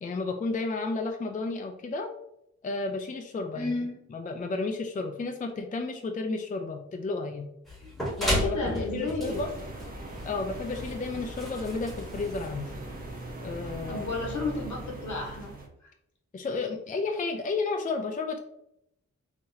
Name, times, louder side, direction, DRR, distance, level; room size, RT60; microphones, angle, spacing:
voice 1, 0.0-2.1 2.6-3.7 4.1-7.5 8.2-9.5 10.2-12.7 13.4-14.1 16.3-18.4, left 3 dB, 25° left, 4 dB, 0.4 m, -32 dB
voice 2, 3.5-4.0 8.4-9.5 13.9-15.5 15.8-15.9, left 3 dB, 70° left, 0 dB, 1.2 m, -32 dB
sound 1, 7.7-13.0, equal, ahead, 1.1 m, -34 dB
sound 2, 9.2-15.7, right 1 dB, 30° right, 0.9 m, -40 dB
3.9 x 2.9 x 2.7 m, 0.78 s
cardioid pair, 75°, 30 cm